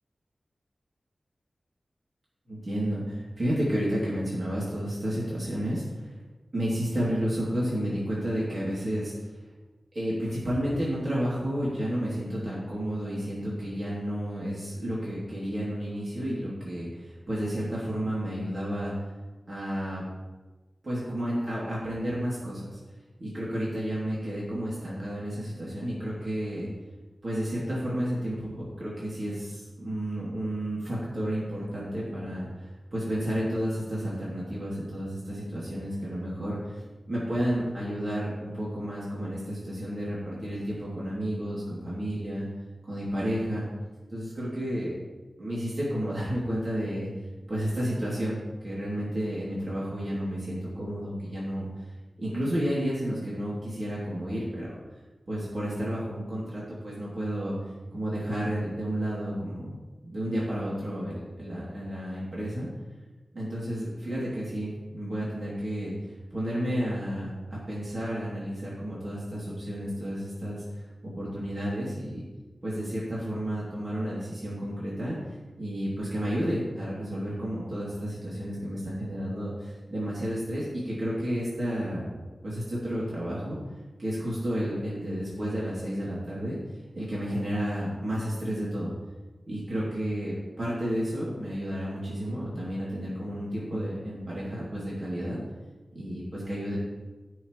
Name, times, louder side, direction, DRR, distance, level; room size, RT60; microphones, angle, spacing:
voice 1, 2.5-6.1 6.5-9.3 9.9-18.9 19.5-20.0 20.8-22.8 23.2-26.7 27.2-36.8 37.1-42.4 42.8-43.7 44.1-45.0 45.4-47.1 47.5-51.9 52.2-54.7 55.3-57.6 57.9-59.7 60.0-62.7 63.3-65.9 66.3-67.3 67.7-72.3 72.6-83.6 84.0-86.6 86.9-88.9 89.5-95.4 95.9-96.8, equal, 55° right, -7 dB, 3.0 m, -31 dB
16.5 x 6.6 x 3.3 m, 1.2 s
wide cardioid pair, 60°, 0 cm